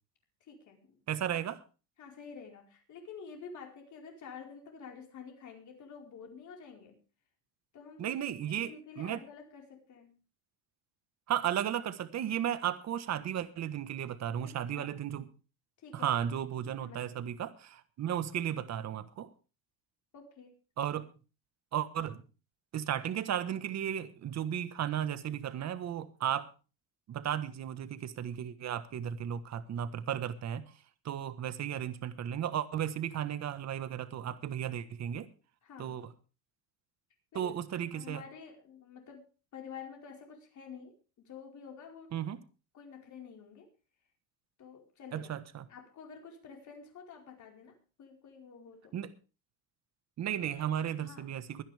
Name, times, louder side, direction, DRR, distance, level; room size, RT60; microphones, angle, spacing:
voice 1, 0.4-1.0 1.3-1.4 2.0-7.0 7.7-8.1 8.5-10.2 14.4-14.9 15.8-16.2 16.8-17.3 20.1-20.6 35.6-36.0 37.3-37.5 37.9-39.3 39.5-42.2 42.7-43.7 44.6-45.3 45.7-49.0 51.0-51.2, left 6 dB, 45° left, 4.8 m, -49 dB
voice 2, 1.1-1.6 8.0-8.7 9.0-9.2 11.3-15.2 15.9-19.3 20.8-21.1 21.7-22.2 22.7-26.5 27.1-30.7 31.0-35.3 35.8-36.1 37.3-38.2 42.1-42.4 45.1-45.6 48.9-49.1 50.2-51.6, right 10 dB, 40° right, 1.4 m, -34 dB
23.0 x 10.0 x 3.5 m
cardioid pair, 145°, 42 cm